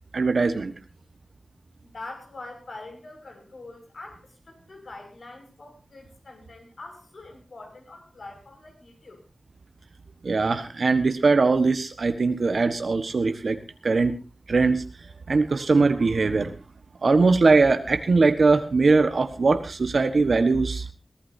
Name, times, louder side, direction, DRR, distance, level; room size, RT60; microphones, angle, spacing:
voice 1, 0.1-0.7 10.2-14.2 14.5-14.8 15.3-16.6 17.0-20.8, right 3 dB, 75° right, 8 dB, 1.3 m, -21 dB
voice 2, 1.8-9.2, left 2 dB, 75° left, 4 dB, 6.3 m, -44 dB
23.0 x 16.5 x 2.7 m, 0.30 s
wide cardioid pair, 85°, 0 cm